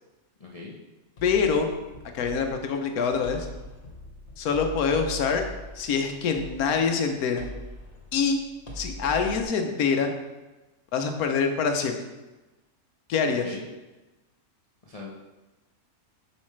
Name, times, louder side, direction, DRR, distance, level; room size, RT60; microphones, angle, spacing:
voice 1, 0.4-0.8 13.4-13.6 14.9-15.2, left 3 dB, 35° left, -5 dB, 0.6 m, -40 dB
voice 2, 1.2-1.7 2.1-3.5 4.4-5.4 5.8-7.5 8.1-8.4 8.7-10.1 10.9-12.0 13.1-13.5, left 5 dB, 85° left, 5 dB, 1.2 m, -25 dB
sound 1, 1.2-9.4, left 1 dB, 55° left, 1.5 m, -42 dB
7.3 x 5.5 x 3.2 m, 1.1 s
omnidirectional pair, 1.5 m